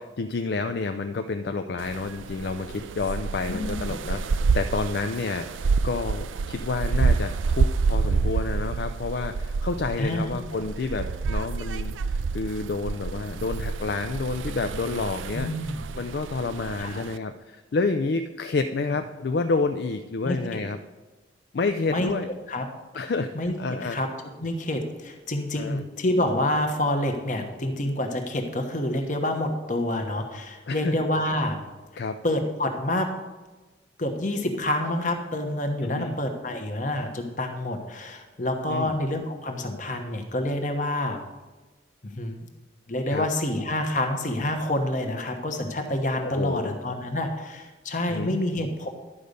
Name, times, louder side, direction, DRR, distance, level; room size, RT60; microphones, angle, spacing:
voice 1, 0.0-15.5 15.9-20.8 21.5-22.3 22.9-24.0 25.6-25.8 30.7-31.0 32.0-32.2 35.8-36.1 38.7-38.9 43.1-43.3 46.2-46.8 48.1-48.3, left 3 dB, 55° left, 8 dB, 0.4 m, -29 dB
sound 1, 1.8-17.2, right 4 dB, 85° right, 0.4 m, -28 dB
voice 2, 3.5-3.8 10.0-10.4 15.3-15.8 16.8-17.0 20.2-20.6 21.9-22.1 22.5-22.7 23.3-23.5 23.9-31.6 32.2-33.1 34.0-41.2 42.0-42.4 42.9-48.9, left 1 dB, 40° left, 5 dB, 1.1 m, -28 dB
11.5 x 5.1 x 6.7 m, 1.2 s
head